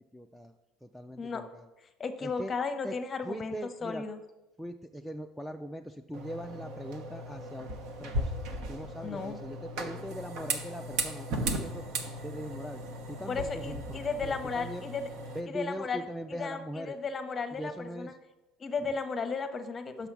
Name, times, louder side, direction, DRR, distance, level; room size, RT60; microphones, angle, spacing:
voice 1, 0.1-1.7 2.2-2.5 2.8-3.0 3.2-4.1 4.6-7.7 8.0-8.3 8.7-11.8 12.2-12.8 13.1-14.9 15.3-17.0 17.6-18.2, equal, ahead, 2 dB, 0.3 m, -41 dB
voice 2, 2.0-3.6 3.8-4.2 9.0-9.4 13.3-15.1 15.5-16.0 16.4-18.1 18.6-20.1, left 4 dB, 25° left, 9 dB, 0.7 m, -34 dB
sound 1, 6.1-15.4, right 1 dB, 65° right, 1.0 m, -37 dB
6.0 x 5.6 x 5.9 m, 1.0 s
cardioid pair, 125°, 0 cm